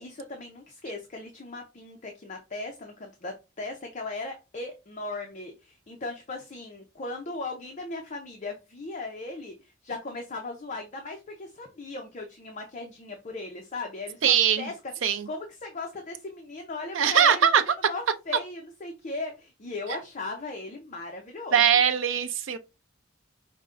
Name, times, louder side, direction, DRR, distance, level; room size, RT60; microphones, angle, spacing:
voice 1, 0.0-14.7 15.0-17.5 17.9-21.8, left 3 dB, 35° left, 0.6 m, -37 dB
voice 2, 14.2-14.7 15.0-15.3 16.9-17.6 21.5-22.6, right 8 dB, 70° right, 0.5 m, -21 dB
5.1 x 2.2 x 3.6 m
head